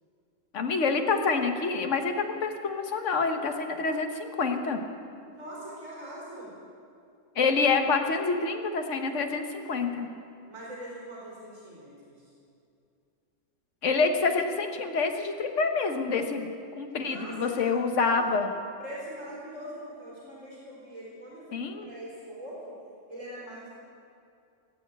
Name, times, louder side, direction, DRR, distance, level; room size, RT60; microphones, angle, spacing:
voice 1, 0.5-4.8 7.3-10.1 13.8-16.5 16.8-18.5 21.5-21.9, left 4 dB, 70° left, 5 dB, 1.5 m, -27 dB
voice 2, 5.3-6.5 10.4-12.3 17.0-17.7 18.0-18.1 18.8-22.7 23.1-23.7, right 1 dB, 80° right, -7 dB, 4.4 m, -42 dB
18.5 x 7.8 x 8.3 m, 2.5 s
omnidirectional pair, 1.3 m